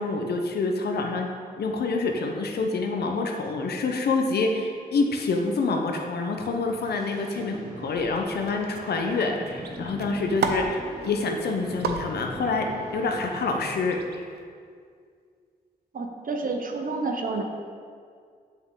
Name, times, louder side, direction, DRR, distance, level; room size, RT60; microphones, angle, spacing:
voice 1, 0.0-14.2, left 3 dB, 80° left, 3 dB, 0.9 m, -27 dB
sound 1, 6.3-14.0, right 2 dB, 20° right, 1.9 m, -42 dB
sound 2, 7.9-14.4, right 4 dB, 85° right, 0.6 m, -36 dB
voice 2, 15.9-17.4, right 3 dB, 55° right, 4 dB, 0.9 m, -29 dB
7.7 x 6.1 x 3.9 m, 2.1 s
cardioid pair, 75°, 16 cm